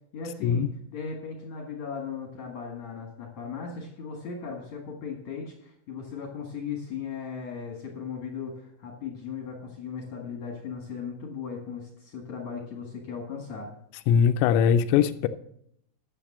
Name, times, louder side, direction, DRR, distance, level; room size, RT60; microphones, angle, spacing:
voice 1, 0.1-13.7, left 6 dB, 65° left, 1 dB, 1.7 m, -37 dB
voice 2, 14.1-15.3, left 8 dB, 85° left, 9 dB, 3.0 m, -21 dB
12.0 x 6.6 x 7.3 m, 0.72 s
omnidirectional pair, 5.9 m